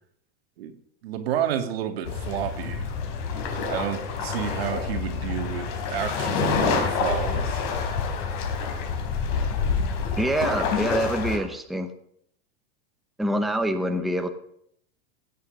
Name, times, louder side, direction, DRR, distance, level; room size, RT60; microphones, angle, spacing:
voice 1, 1.0-2.9 3.7-7.6, right 10 dB, 85° right, 2.1 m, -30 dB
sound 1, 2.1-11.4, left 5 dB, 50° left, 3.9 m, -27 dB
voice 2, 10.2-11.9 13.2-14.3, right 1 dB, ahead, 0.8 m, -25 dB
16.0 x 8.8 x 6.5 m
supercardioid pair, 165°, 30 cm